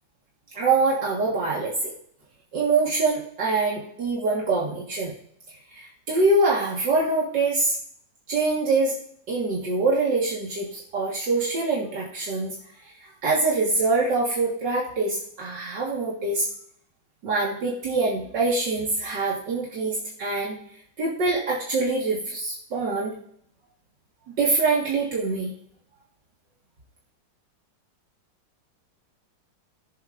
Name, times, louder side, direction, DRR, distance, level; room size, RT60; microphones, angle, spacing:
voice 1, 0.5-1.9 2.5-5.1 5.7-7.8 8.3-8.9 9.3-12.5 13.0-16.5 17.2-20.6 21.0-23.1 24.4-25.5, right 3 dB, 75° right, -4 dB, 2.3 m, -24 dB
21.0 x 7.5 x 2.5 m, 0.68 s
omnidirectional pair, 1.9 m